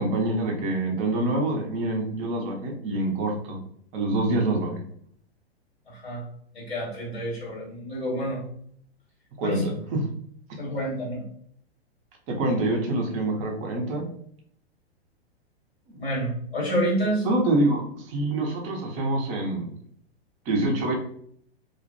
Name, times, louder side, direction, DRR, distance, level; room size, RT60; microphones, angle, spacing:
voice 1, 0.0-3.6 3.9-4.8 9.4-10.0 12.3-14.0 15.9-16.0 17.2-19.7 20.5-20.9, right 2 dB, 25° right, 1 dB, 0.5 m, -26 dB
voice 2, 5.9-6.2 6.5-8.4 9.4-9.7 10.6-11.2 16.0-17.2, equal, 85° left, -4 dB, 1.2 m, -28 dB
2.4 x 2.0 x 2.5 m, 0.65 s
figure-of-eight pair, 105°, 32 cm